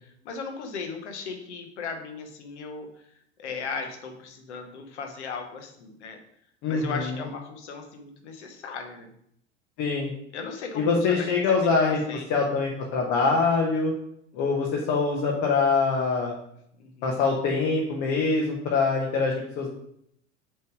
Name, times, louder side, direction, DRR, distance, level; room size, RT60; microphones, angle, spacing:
voice 1, 0.0-2.9 3.4-6.2 6.7-9.1 10.3-11.3 11.6-12.5 16.8-17.3, left 5 dB, 75° left, 5 dB, 1.1 m, -37 dB
voice 2, 6.6-7.2 9.8-10.1 10.7-12.0 12.3-13.9 14.3-16.3 17.0-19.7, left 4 dB, 55° left, -1 dB, 1.2 m, -24 dB
6.7 x 3.4 x 4.7 m, 0.72 s
hypercardioid pair, 80°, 34 cm